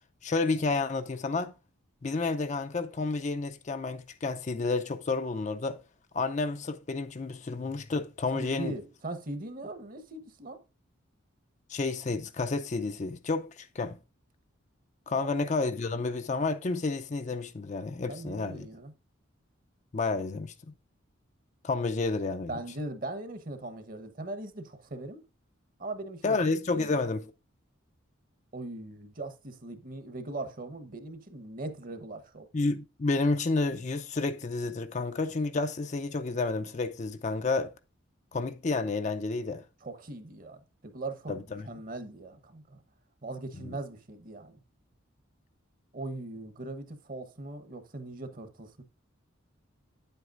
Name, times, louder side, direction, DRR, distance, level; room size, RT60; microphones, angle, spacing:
voice 1, 0.2-1.5 2.0-5.8 6.1-8.7 11.7-14.0 15.1-18.7 19.9-20.5 21.6-22.5 26.2-27.2 32.5-37.7 38.3-39.6 41.3-41.7 43.6-43.8, left 3 dB, 35° left, 0.4 m, -30 dB
voice 2, 8.3-10.6 15.1-15.4 18.1-18.9 22.5-25.2 25.8-26.4 26.7-27.0 28.5-32.5 39.8-42.8 43.2-44.6 45.9-48.8, right 2 dB, 45° right, 1.0 m, -40 dB
9.5 x 8.0 x 2.4 m
head